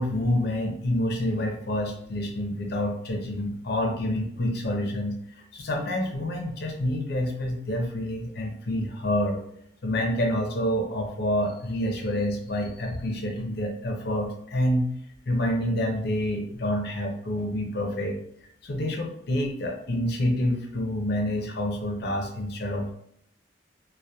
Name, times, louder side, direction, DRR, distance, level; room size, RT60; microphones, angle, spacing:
voice 1, 0.0-5.2 5.5-9.4 9.8-14.8 15.3-18.2 18.6-22.9, left 1 dB, 60° left, 2 dB, 0.5 m, -27 dB
2.7 x 2.1 x 2.2 m, 0.69 s
head